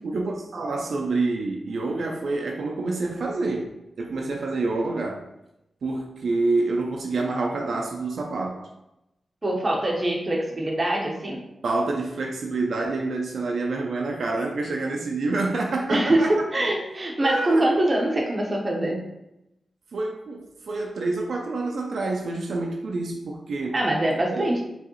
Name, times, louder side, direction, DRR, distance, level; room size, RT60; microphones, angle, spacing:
voice 1, 0.0-3.7 4.0-5.3 5.8-8.7 11.6-16.3 17.2-17.7 19.9-23.8 24.3-24.5, right 3 dB, 70° right, 0 dB, 0.5 m, -27 dB
voice 2, 9.4-11.5 15.9-19.0 23.7-24.6, right 1 dB, 25° right, 0 dB, 0.8 m, -23 dB
4.8 x 3.2 x 3.1 m, 0.88 s
wide cardioid pair, 115°, 0 cm